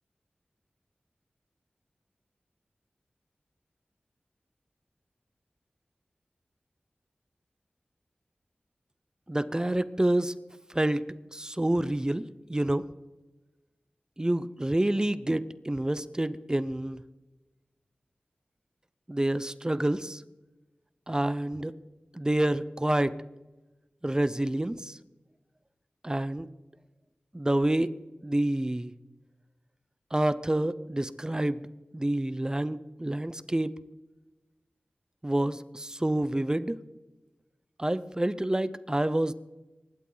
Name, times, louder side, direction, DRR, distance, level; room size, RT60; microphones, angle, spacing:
voice 1, 9.3-10.3 10.7-12.8 14.2-17.0 19.1-20.2 21.1-21.7 22.1-23.1 24.0-25.0 26.0-26.5 27.3-27.9 28.2-28.9 30.1-31.7 31.9-33.7 35.2-36.8 37.8-39.3, right 1 dB, 20° right, 15 dB, 0.7 m, -28 dB
24.0 x 11.5 x 4.0 m, 1.1 s
wide cardioid pair, 55°, 3 cm